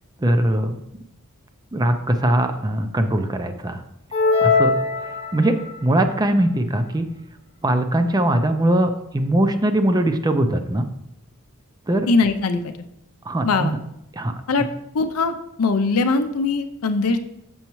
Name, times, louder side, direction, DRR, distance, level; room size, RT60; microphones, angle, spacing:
voice 1, 0.2-0.8 1.7-3.8 4.4-4.7 5.3-7.1 7.6-10.9 11.9-12.1 13.3-13.8 14.2-14.3, right 1 dB, 15° right, 7 dB, 0.4 m, -21 dB
sound 1, 4.1-5.8, left 4 dB, 25° left, 0.6 m, -20 dB
voice 2, 12.1-12.7 13.4-13.7 14.5-14.7 14.9-17.2, left 3 dB, 75° left, 8 dB, 0.6 m, -21 dB
7.0 x 6.5 x 3.0 m, 0.81 s
head